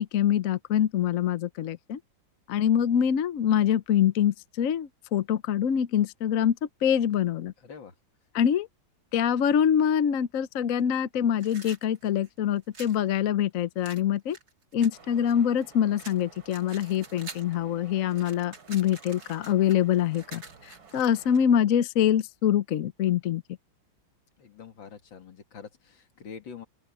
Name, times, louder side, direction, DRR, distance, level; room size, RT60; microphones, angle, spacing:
voice 1, 0.0-2.0 2.5-6.6 6.8-7.5 8.3-8.7 9.1-14.4 14.7-23.4, left 9 dB, 60° left, 0.9 m, -25 dB
voice 2, 7.6-7.9 24.4-26.7, left 6 dB, 75° left, 2.6 m, -45 dB
sound 1, 11.3-13.0 13.8-15.6 16.0-17.6 17.9-21.4, right 4 dB, 50° right, 2.9 m, -47 dB
sound 2, 14.9-21.5, right 5 dB, 85° right, 3.8 m, -53 dB
open air
omnidirectional pair, 2.1 m